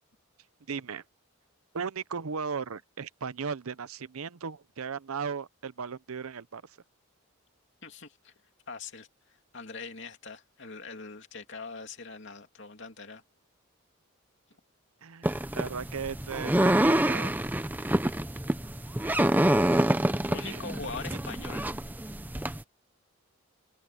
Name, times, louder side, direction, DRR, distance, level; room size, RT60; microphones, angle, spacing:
voice 1, 0.7-1.0 1.7-6.6 15.0-17.4 20.4-20.6, right 6 dB, 80° right, 0.7 m, -36 dB
voice 2, 7.8-8.3 8.7-13.2 19.0-19.3 20.3-21.7, left 4 dB, 55° left, 2.9 m, -42 dB
sound 1, 15.2-22.6, right 1 dB, 10° right, 0.6 m, -27 dB
open air
head